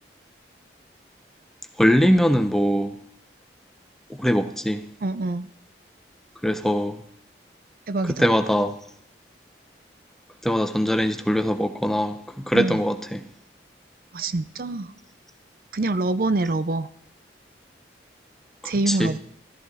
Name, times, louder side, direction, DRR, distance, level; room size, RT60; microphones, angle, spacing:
voice 1, 1.8-2.9 4.2-4.8 6.4-7.0 8.1-8.8 10.4-13.2 18.9-19.1, equal, ahead, 8 dB, 0.8 m, -22 dB
voice 2, 5.0-5.5 7.9-8.3 12.5-12.8 14.1-14.9 15.7-16.9 18.6-19.2, right 2 dB, 50° right, 14 dB, 0.5 m, -25 dB
14.0 x 13.5 x 4.1 m, 0.67 s
head